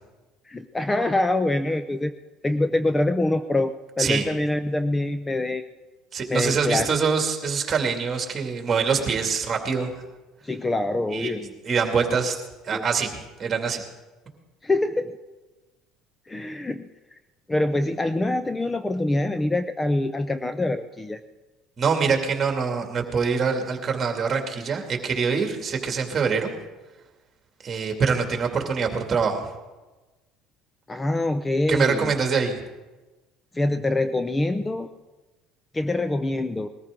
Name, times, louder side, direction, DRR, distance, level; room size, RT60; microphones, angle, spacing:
voice 1, 0.5-2.1 2.4-5.6 6.3-6.9 10.4-11.4 12.7-12.9 14.6-15.2 16.3-16.9 17.5-21.2 30.9-32.1 33.5-34.9 35.7-36.7, left 2 dB, 15° left, 10 dB, 0.5 m, -25 dB
voice 2, 6.1-9.9 11.1-12.3 12.6-13.8 21.8-26.5 27.6-29.5 31.7-32.6, right 5 dB, 30° right, 3 dB, 2.4 m, -24 dB
20.5 x 14.0 x 3.8 m, 1.2 s
supercardioid pair, 110°, 0 cm